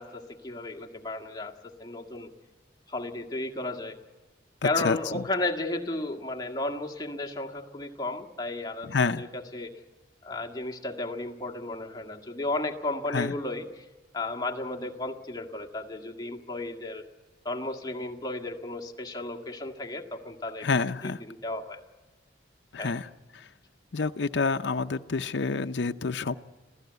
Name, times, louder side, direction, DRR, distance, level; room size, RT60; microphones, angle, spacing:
voice 1, 0.0-2.3 2.9-4.0 4.6-8.9 9.1-9.7 10.2-13.9 14.1-17.0 17.5-20.7 21.0-21.2 21.4-21.8 22.8-22.9, left 2 dB, 20° left, 1 dB, 1.7 m, -34 dB
voice 2, 4.6-5.2 8.8-9.2 13.1-13.3 20.6-21.2 22.7-23.5 23.9-26.4, left 4 dB, 75° left, 8 dB, 0.6 m, -28 dB
26.5 x 16.0 x 8.1 m, 1.2 s
head